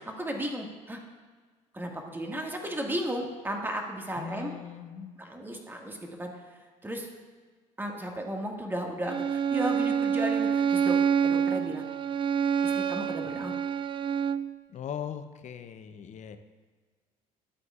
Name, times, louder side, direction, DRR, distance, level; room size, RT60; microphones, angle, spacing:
voice 1, 0.1-1.0 1.7-4.5 5.2-6.3 6.8-7.1 7.8-10.9 11.2-11.9 12.7-13.5, right 1 dB, 15° right, 1 dB, 1.8 m, -34 dB
voice 2, 4.1-5.2 14.7-16.4, left 8 dB, 45° left, 9 dB, 0.7 m, -39 dB
Bowed string instrument, 9.1-14.5, right 7 dB, 30° right, 0.4 m, -27 dB
12.5 x 7.8 x 2.4 m, 1.5 s
hypercardioid pair, 65°, 17 cm